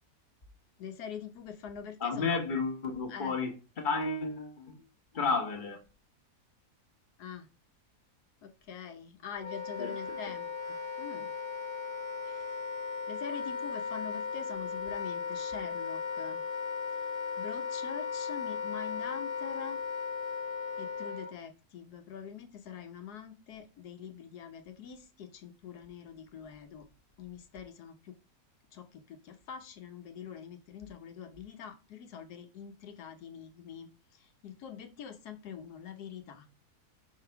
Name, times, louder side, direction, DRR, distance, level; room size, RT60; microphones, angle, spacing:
voice 1, 0.8-2.6 3.1-3.4 7.2-7.5 8.4-10.5 11.0-11.3 12.2-12.6 13.1-16.4 17.4-19.8 20.8-26.9 27.2-28.1 28.7-33.9 34.2-36.5, left 7 dB, 90° left, 1.4 m, -44 dB
voice 2, 2.0-4.8 5.1-5.8 9.8-9.9, left 4 dB, 35° left, 1.2 m, -32 dB
Wind instrument woodwind instrument, 9.4-21.3, left 5 dB, 55° left, 1.3 m, -36 dB
5.4 x 3.8 x 5.6 m
omnidirectional pair, 1.6 m